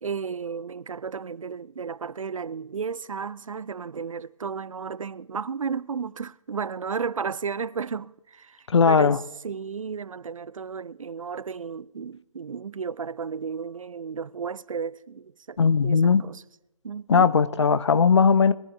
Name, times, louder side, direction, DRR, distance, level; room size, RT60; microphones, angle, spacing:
voice 1, 0.0-8.6 8.9-9.2 9.4-16.4 16.8-17.3, right 6 dB, 65° right, 0.4 m, -33 dB
voice 2, 8.7-9.2 15.6-16.2 17.1-18.5, left 5 dB, 50° left, 0.6 m, -18 dB
21.5 x 14.5 x 2.6 m
figure-of-eight pair, 145°, 19 cm